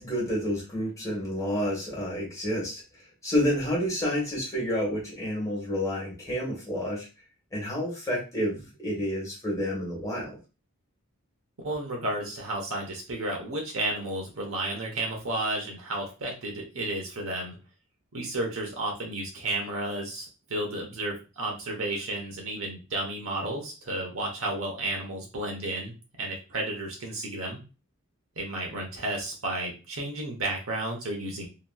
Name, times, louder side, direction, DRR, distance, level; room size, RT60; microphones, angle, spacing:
voice 1, 0.0-2.8 3.2-7.1 7.5-10.4, equal, 15° left, -5 dB, 1.3 m, -29 dB
voice 2, 11.6-17.6 18.1-27.6 28.4-31.5, right 1 dB, 80° right, 0 dB, 0.9 m, -32 dB
2.9 x 2.8 x 2.2 m, 0.32 s
head